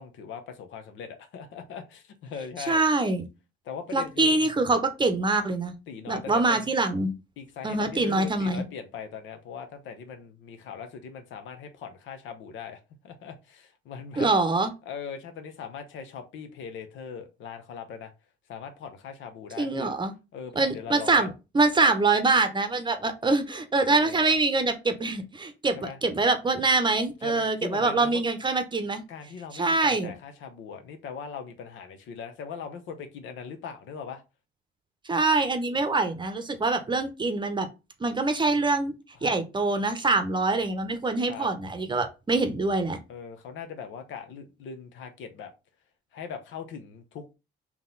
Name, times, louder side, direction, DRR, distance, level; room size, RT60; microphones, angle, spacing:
voice 1, 0.0-2.8 3.7-4.4 5.9-6.7 7.4-14.3 14.9-18.1 18.5-19.9 20.3-21.3 23.8-24.4 25.7-26.0 27.2-28.2 29.1-34.2 39.2-39.4 41.3-41.5 43.1-45.5 46.1-47.3, left 6 dB, 75° left, 0.8 m, -40 dB
voice 2, 2.7-3.2 3.9-5.7 6.1-7.1 7.6-8.6 14.2-14.7 19.6-20.1 20.6-21.3 21.5-29.0 29.5-30.1 35.1-37.7 38.0-38.9 39.2-43.0, right 3 dB, 25° right, 0.7 m, -24 dB
3.8 x 3.0 x 3.8 m
cardioid pair, 95°, 20 cm